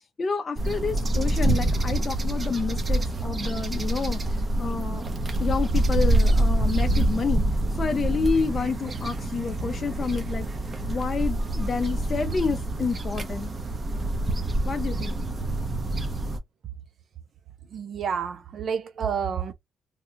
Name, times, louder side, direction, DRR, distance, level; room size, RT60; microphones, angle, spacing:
voice 1, 0.2-5.1 5.4-13.5 14.6-15.1, left 5 dB, 35° left, 0.5 m, -29 dB
sound 1, 0.6-16.4, right 1 dB, 35° right, 0.9 m, -26 dB
voice 2, 17.7-19.5, right 7 dB, 60° right, 0.5 m, -29 dB
3.5 x 2.4 x 2.9 m
cardioid pair, 90°, 0 cm